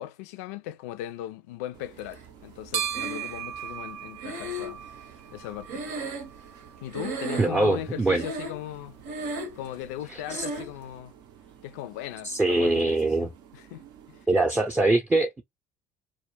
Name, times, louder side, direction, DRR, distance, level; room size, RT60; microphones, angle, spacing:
voice 1, 0.0-4.8 5.3-5.9 6.8-9.0 9.6-11.1 11.6-13.3 13.5-13.8 14.1-14.2, left 12 dB, 80° left, 0.4 m, -38 dB
sound 1, 1.7-14.3, right 9 dB, 65° right, 0.5 m, -41 dB
Breathing, 2.9-3.6 4.2-6.7 6.9-7.7 8.1-8.7 9.0-9.7 10.3-10.7, right 2 dB, 80° right, 0.8 m, -35 dB
voice 2, 7.3-8.2 10.1-10.4 12.2-13.3 14.3-15.4, right 2 dB, 15° right, 0.5 m, -23 dB
2.2 x 2.1 x 3.1 m
hypercardioid pair, 75°, 8 cm